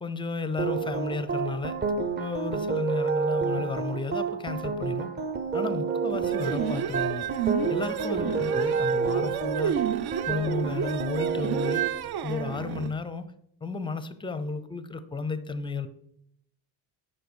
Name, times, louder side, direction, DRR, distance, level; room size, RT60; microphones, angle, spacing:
voice 1, 0.0-1.8 2.2-5.1 5.5-7.3 7.7-9.8 10.3-11.8 12.2-13.3 13.6-15.9, left 4 dB, 10° left, 12 dB, 0.5 m, -33 dB
sound 1, 0.6-11.9, right 5 dB, 25° right, 0.7 m, -29 dB
sound 2, 6.1-12.9, right 10 dB, 60° right, 0.6 m, -31 dB
8.3 x 5.5 x 6.2 m, 0.75 s
cardioid pair, 140°, 44 cm